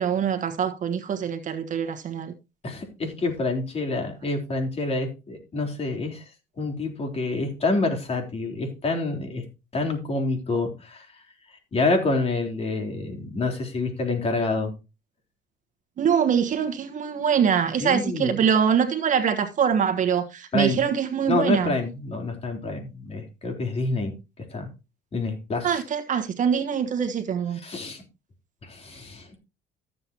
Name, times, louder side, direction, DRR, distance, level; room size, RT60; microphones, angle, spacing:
voice 1, 0.0-2.3 16.0-21.7 25.6-27.6, right 7 dB, 50° right, 1.3 m, -24 dB
voice 2, 2.6-6.2 6.6-9.4 9.7-11.1 11.7-14.7 17.8-18.4 20.5-20.8 21.3-24.1 24.5-24.7 25.1-25.8 27.5-28.0 28.6-29.4, left 3 dB, 35° left, 3.8 m, -27 dB
14.0 x 7.8 x 2.9 m
cardioid pair, 110°, 17 cm